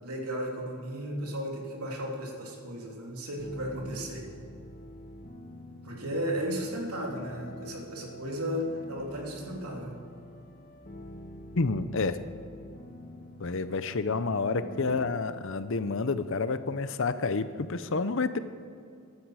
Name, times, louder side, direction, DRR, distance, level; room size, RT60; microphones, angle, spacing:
voice 1, 0.0-4.2 5.8-10.0, equal, 90° right, -2 dB, 3.2 m, -34 dB
sound 1, 3.4-15.2, left 1 dB, 40° left, 1.3 m, -46 dB
voice 2, 11.5-12.2 13.4-18.4, left 4 dB, 60° left, 12 dB, 0.7 m, -29 dB
15.0 x 12.5 x 4.9 m, 2.4 s
head